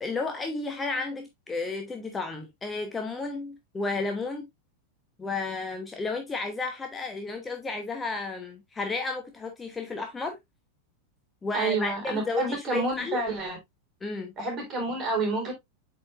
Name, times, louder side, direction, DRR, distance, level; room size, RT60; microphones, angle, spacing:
voice 1, 0.0-4.5 5.2-10.4 11.4-13.2 14.0-14.3, left 3 dB, 15° left, 1.1 m, -32 dB
voice 2, 11.5-13.6 14.4-15.5, right 3 dB, 30° right, 4.2 m, -29 dB
8.5 x 4.8 x 2.5 m
figure-of-eight pair, 90°, 0 cm